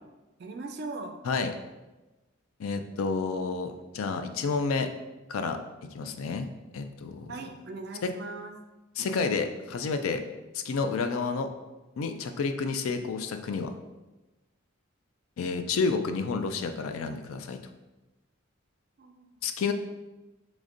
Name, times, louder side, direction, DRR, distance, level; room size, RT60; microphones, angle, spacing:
voice 1, 0.4-1.2 7.3-8.6 15.6-15.7 19.0-19.4, right 3 dB, 50° right, 5 dB, 0.4 m, -40 dB
voice 2, 2.6-4.9 5.3-5.6 5.9-6.5 6.7-7.3 8.0-8.1 9.0-10.2 10.5-11.5 12.0-13.7 15.4-17.6 19.4-19.7, left 4 dB, 80° left, 7 dB, 0.4 m, -30 dB
5.0 x 3.1 x 2.5 m, 1.1 s
head